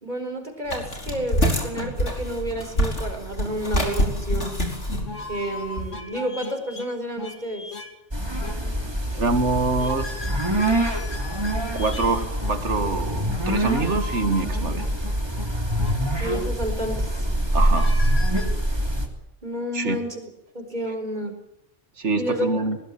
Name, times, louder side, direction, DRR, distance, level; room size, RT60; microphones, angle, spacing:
voice 1, 0.0-4.6 5.3-7.7 16.2-17.1 19.4-20.2 20.5-21.3 22.2-22.5, equal, 35° right, 5 dB, 4.6 m, -30 dB
sound 1, 0.7-6.0, equal, 70° left, 5.2 m, -26 dB
sound 2, 3.9-4.0 4.4-4.5 5.1-6.9 7.2-7.9 8.4-8.6 9.8-12.5 13.8-15.5 15.8-15.9 16.3-16.5 17.7-18.5, left 3 dB, 85° left, 3.0 m, -37 dB
sound 3, 8.1-19.1, right 1 dB, 20° right, 3.2 m, -25 dB
voice 2, 9.1-10.3 11.7-14.9 17.5-17.9 19.7-20.0 22.0-22.8, right 3 dB, 70° right, 8 dB, 2.4 m, -25 dB
20.5 x 20.0 x 9.2 m, 0.82 s
omnidirectional pair, 1.3 m